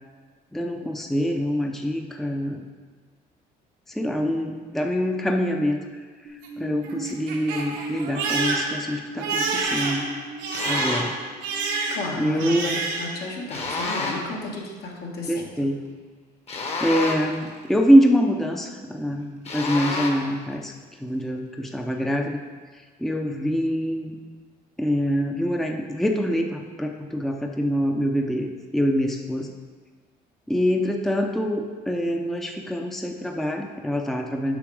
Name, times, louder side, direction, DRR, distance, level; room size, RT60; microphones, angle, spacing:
voice 1, 0.5-2.7 3.9-5.8 6.6-10.0 10.7-11.1 12.2-12.9 15.3-15.8 16.8-20.7 21.0-22.4 23.0-24.2 24.8-29.5 30.5-34.6, equal, ahead, 3 dB, 0.6 m, -24 dB
Crying sobbing, 6.2-13.2 13.5-14.2, right 3 dB, 90° right, 1.3 m, -29 dB
sound 1, 10.5-11.2 13.5-14.4 16.5-17.5 19.5-20.3, left 3 dB, 40° left, 1.2 m, -29 dB
voice 2, 11.9-12.7 13.0-15.7, left 3 dB, 70° left, -1 dB, 1.6 m, -33 dB
7.0 x 5.9 x 4.8 m, 1.5 s
cardioid pair, 110°, 17 cm